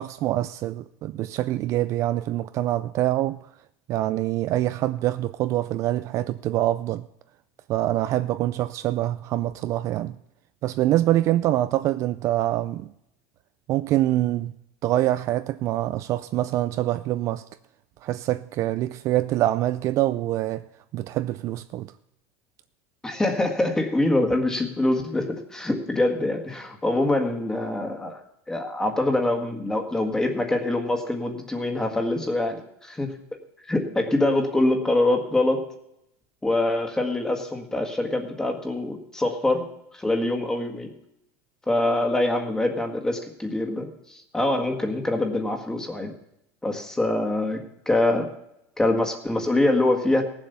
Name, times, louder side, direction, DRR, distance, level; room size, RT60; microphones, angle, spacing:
voice 1, 0.0-3.4 3.9-7.1 7.7-10.2 10.6-12.9 13.7-14.5 14.8-17.4 18.0-20.6 20.9-21.9, right 14 dB, 40° right, 0.4 m, -25 dB
voice 2, 23.0-28.2 28.5-33.1 33.7-35.7 36.4-39.7 39.9-40.9 41.7-46.1 46.6-48.3 48.8-50.2, left 2 dB, 5° left, 1.7 m, -24 dB
17.5 x 7.5 x 6.9 m
supercardioid pair, 150°, 8 cm